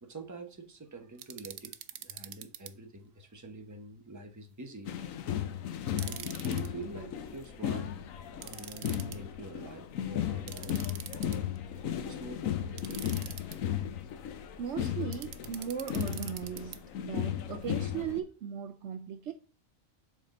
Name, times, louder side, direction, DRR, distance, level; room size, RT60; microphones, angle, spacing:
voice 1, 0.0-4.9 5.9-7.9 8.4-13.0, right 2 dB, 15° right, 1.0 m, -46 dB
sound 1, 1.2-2.7 5.9-6.7 8.4-9.2 10.5-11.6 12.8-13.6 15.1-16.8, right 11 dB, 85° right, 1.1 m, -44 dB
sound 2, 4.9-18.2, left 10 dB, 75° left, 1.1 m, -35 dB
voice 2, 14.6-19.3, right 8 dB, 65° right, 0.8 m, -38 dB
7.4 x 4.2 x 5.2 m
omnidirectional pair, 1.4 m